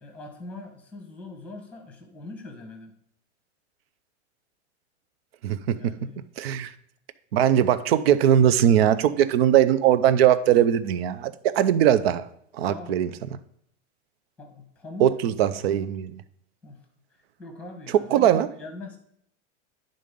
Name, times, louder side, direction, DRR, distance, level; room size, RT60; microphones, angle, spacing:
voice 1, 0.0-2.9 5.7-6.2 12.6-13.1 14.4-15.1 16.6-16.8 17.4-19.0, left 2 dB, 5° left, 5 dB, 1.0 m, -41 dB
voice 2, 5.4-5.8 6.4-6.7 7.3-12.2 12.5-13.1 15.0-16.2 18.1-18.5, right 10 dB, 55° right, 13 dB, 0.6 m, -20 dB
11.0 x 3.8 x 5.2 m, 0.70 s
supercardioid pair, 165°, 37 cm